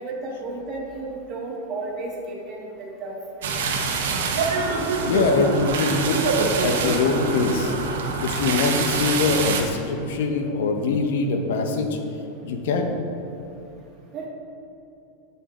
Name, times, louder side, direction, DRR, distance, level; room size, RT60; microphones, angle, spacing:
voice 1, 0.0-3.6 14.1-14.3, right 2 dB, 35° right, -2 dB, 1.6 m, -33 dB
sound 1, 3.4-9.6, right 4 dB, 85° right, 1.0 m, -25 dB
voice 2, 4.8-6.3 6.6-7.7 8.2-12.0 12.4-12.9, left 4 dB, 75° left, 4 dB, 0.9 m, -23 dB
8.9 x 5.5 x 3.7 m, 2.8 s
supercardioid pair, 135°, 0 cm